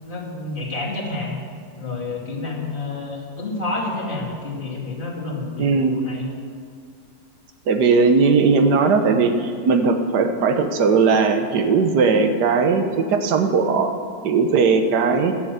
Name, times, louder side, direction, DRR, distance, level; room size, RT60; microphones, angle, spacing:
voice 1, 0.0-1.4 1.8-6.3, left 2 dB, 30° left, -6 dB, 2.7 m, -29 dB
voice 2, 5.6-6.0 7.7-12.8 13.1-13.9 14.2-15.3, right 4 dB, 80° right, 6 dB, 1.5 m, -18 dB
12.0 x 6.8 x 8.1 m, 2.2 s
omnidirectional pair, 1.7 m